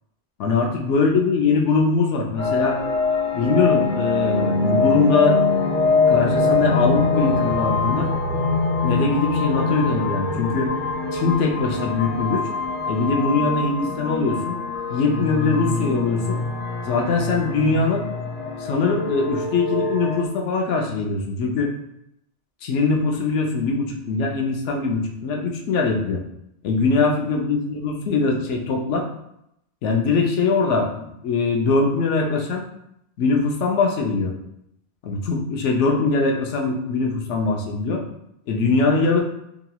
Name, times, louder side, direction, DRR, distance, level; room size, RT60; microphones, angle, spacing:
voice 1, 0.4-2.8 3.3-5.4 6.1-8.1 8.8-10.7 11.1-12.5 12.9-14.6 14.9-16.4 16.8-18.1 18.6-21.7 22.6-26.2 26.6-29.1 29.8-32.6 33.2-34.3 35.0-38.0 38.5-39.2, left 4 dB, 80° left, 1 dB, 0.9 m, -22 dB
sound 1, 2.4-20.2, left 3 dB, 55° left, 0.7 m, -23 dB
2.9 x 2.8 x 2.2 m, 0.78 s
omnidirectional pair, 1.2 m